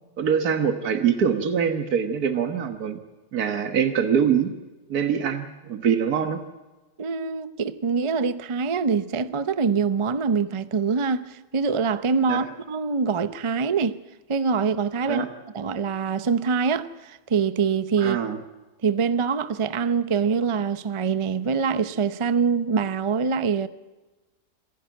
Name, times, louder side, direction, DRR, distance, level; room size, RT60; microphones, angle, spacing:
voice 1, 0.2-3.0 3.3-4.5 4.9-6.4 12.3-12.5 15.1-15.3 18.0-18.4, right 7 dB, 85° right, 1.8 m, -24 dB
voice 2, 7.0-14.0 14.3-15.2 15.5-18.2 18.8-23.7, right 5 dB, 30° right, 0.5 m, -24 dB
27.0 x 11.0 x 9.2 m
omnidirectional pair, 1.6 m